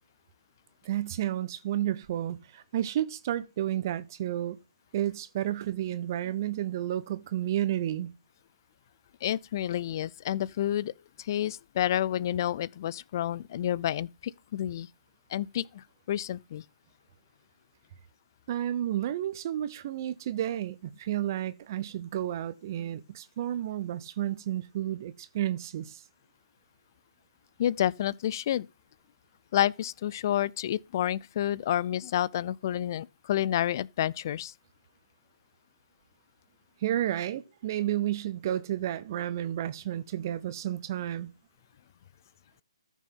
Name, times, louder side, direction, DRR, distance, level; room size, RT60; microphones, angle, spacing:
voice 1, 0.8-4.6 4.9-8.1 18.5-26.0 36.8-41.3, right 12 dB, 35° right, 0.7 m, -31 dB
voice 2, 9.2-10.9 11.2-14.9 15.3-16.6 27.6-28.7 29.5-34.5, left 11 dB, 40° left, 0.4 m, -29 dB
14.0 x 6.1 x 3.8 m
figure-of-eight pair, 145°, 3 cm